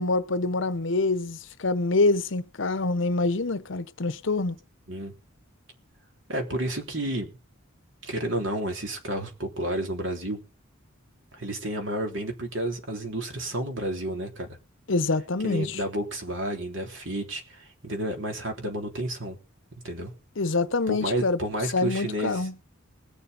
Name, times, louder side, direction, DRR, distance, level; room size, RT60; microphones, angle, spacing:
voice 1, 0.0-4.6 14.9-15.8 20.4-21.4 21.7-22.5, left 3 dB, 60° left, 0.8 m, -26 dB
voice 2, 6.3-7.3 8.0-10.4 11.3-14.6 15.4-19.4 19.8-20.1 20.9-22.5, right 1 dB, 65° right, 3.5 m, -31 dB
20.5 x 7.0 x 5.3 m
head